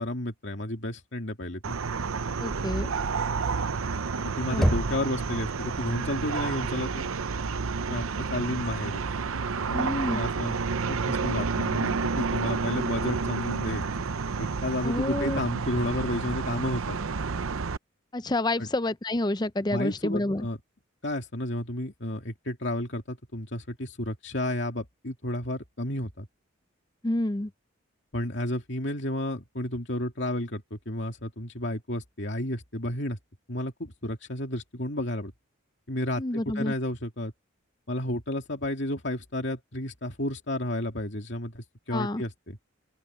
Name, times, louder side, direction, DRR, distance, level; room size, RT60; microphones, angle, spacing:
voice 1, 0.0-1.8 4.4-7.1 7.9-8.0 8.3-9.0 9.6-10.5 10.9-13.9 14.4-17.0 18.6-18.7 19.7-20.6 21.0-26.3 28.1-33.2 33.5-35.3 35.9-37.3 37.9-42.6, left 1 dB, 55° left, 2.7 m, -32 dB
sound 1, 1.6-17.8, right 4 dB, 85° right, 0.7 m, -30 dB
voice 2, 2.4-2.9 4.5-4.7 9.7-10.2 14.8-15.4 18.1-20.5 27.0-27.5 36.2-36.7 41.9-42.2, left 1 dB, 20° left, 0.5 m, -28 dB
Knock, 4.6-5.5, equal, ahead, 6.2 m, -27 dB
open air
head